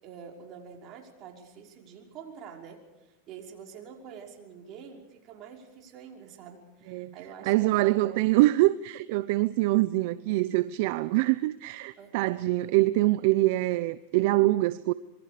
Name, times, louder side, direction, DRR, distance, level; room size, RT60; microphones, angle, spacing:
voice 1, 0.0-8.0 12.0-12.2, right 7 dB, 40° right, 5.5 m, -47 dB
voice 2, 7.5-14.9, right 18 dB, 60° right, 0.7 m, -24 dB
26.0 x 23.5 x 5.1 m
supercardioid pair, 130°, 0 cm